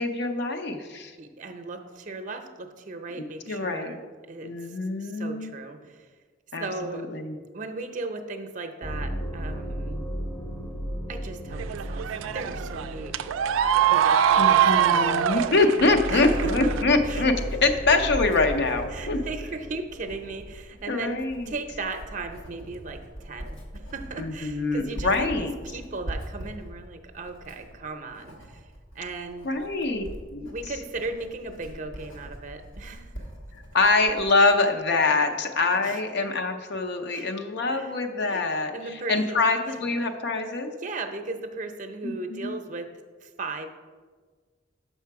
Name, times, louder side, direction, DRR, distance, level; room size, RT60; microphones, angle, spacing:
voice 1, 0.0-1.1 3.2-4.0 4.4-5.6 6.5-7.4 14.4-17.3 17.6-19.2 20.9-21.5 24.2-25.5 29.4-30.0 30.3-30.5 33.7-38.7 39.1-40.7 42.0-42.6, left 3 dB, 60° left, 6 dB, 0.6 m, -24 dB
voice 2, 1.2-4.5 5.0-6.1 6.6-7.1 7.5-10.0 11.1-13.2 13.9-15.3 16.1-16.7 17.0-17.2 17.9-18.0 18.9-28.6 28.9-29.5 30.5-33.3 35.2-35.3 35.8-36.0 37.1-37.4 37.7-37.9 38.2-38.5 38.7-39.8 40.8-43.7, right 3 dB, 40° right, 7 dB, 0.6 m, -37 dB
sound 1, 8.8-19.8, equal, 10° left, 0.6 m, -35 dB
sound 2, 11.5-16.8, right 9 dB, 90° right, 0.3 m, -23 dB
Writing, 15.7-34.3, right 1 dB, 85° left, 1.4 m, -42 dB
6.6 x 5.6 x 4.7 m, 1.5 s
head